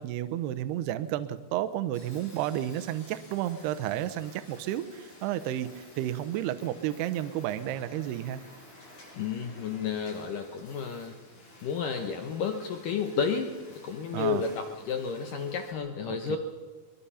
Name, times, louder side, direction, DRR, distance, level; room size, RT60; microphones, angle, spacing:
voice 1, 0.0-8.4 14.1-14.4 16.1-16.4, right 12 dB, 75° right, 11 dB, 2.5 m, -32 dB
sound 1, 1.9-15.7, left 1 dB, 40° left, 6.8 m, -52 dB
voice 2, 9.1-11.2 11.6-16.4, left 6 dB, 85° left, 6 dB, 1.8 m, -32 dB
23.0 x 22.5 x 5.7 m, 1.4 s
omnidirectional pair, 5.6 m